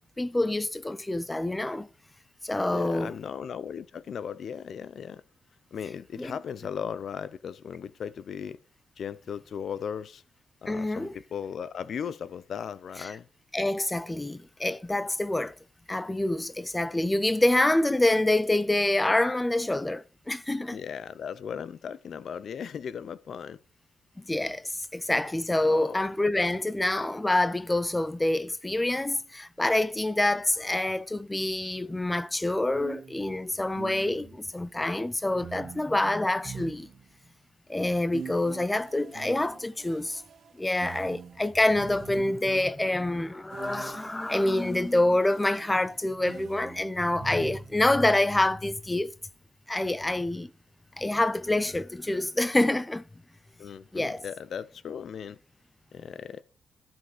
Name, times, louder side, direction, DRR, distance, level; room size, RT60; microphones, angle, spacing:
voice 1, 0.2-1.9 2.4-3.1 6.2-6.3 10.7-11.1 13.0-13.1 13.5-15.6 15.9-20.8 24.2-36.9 37.7-40.2 40.5-49.1 49.7-50.5 51.0-53.0 53.9-54.2, left 1 dB, 10° left, 0.5 m, -26 dB
voice 2, 2.7-5.2 5.7-8.6 9.0-10.2 10.6-13.3 20.7-23.6 25.6-26.0 53.6-55.4 55.9-56.4, left 7 dB, 60° left, 0.6 m, -37 dB
sound 1, 31.7-31.9 32.7-34.5 35.4-37.3 38.1-42.6 43.5-48.0, right 7 dB, 60° right, 0.6 m, -45 dB
12.0 x 6.4 x 5.0 m
cardioid pair, 100°, 0 cm